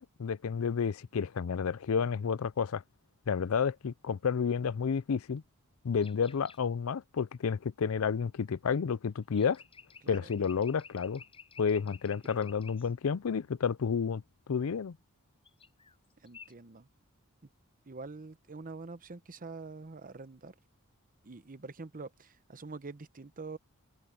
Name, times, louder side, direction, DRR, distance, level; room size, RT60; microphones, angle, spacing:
voice 1, 0.0-2.8 3.3-5.4 5.8-9.6 10.1-11.2 11.6-14.2 14.5-15.0, left 6 dB, 75° left, 0.5 m, -30 dB
sound 1, 6.0-6.6 9.2-12.9 15.4-16.0 16.2-16.5, left 5 dB, 25° left, 7.1 m, -53 dB
voice 2, 10.0-10.3 12.2-12.4 16.2-16.9 17.9-20.5 21.2-23.6, right 3 dB, 40° right, 0.8 m, -45 dB
head